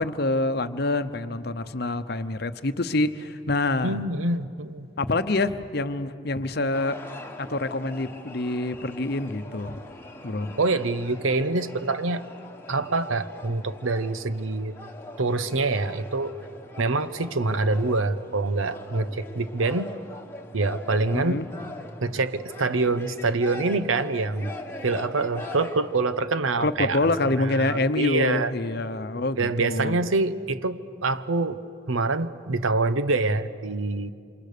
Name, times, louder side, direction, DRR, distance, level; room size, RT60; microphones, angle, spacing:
voice 1, 0.0-4.0 5.0-7.0 7.4-9.8 10.2-10.5 21.1-21.5 26.6-30.0, left 2 dB, 50° left, 10 dB, 0.8 m, -26 dB
voice 2, 3.8-4.9 10.6-12.2 12.7-14.7 15.2-16.3 16.8-19.9 20.5-21.4 22.0-24.5 24.8-28.5 29.3-31.6 31.9-34.1, right 3 dB, 85° right, 13 dB, 0.9 m, -25 dB
sound 1, 6.7-26.3, left 2 dB, 10° left, 1.4 m, -42 dB
28.0 x 26.5 x 6.8 m, 2.4 s
head